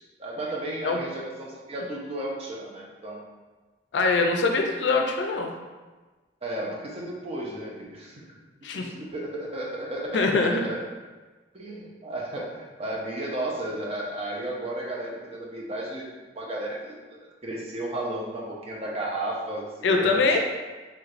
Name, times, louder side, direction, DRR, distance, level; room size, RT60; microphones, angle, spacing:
voice 1, 0.2-3.2 6.4-8.2 8.7-10.8 11.5-16.1 16.4-20.4, right 1 dB, 35° right, -2 dB, 0.6 m, -33 dB
voice 2, 3.9-5.5 8.6-8.9 10.1-10.7 19.8-20.4, left 3 dB, 70° left, 3 dB, 0.4 m, -23 dB
3.1 x 3.1 x 2.4 m, 1.3 s
head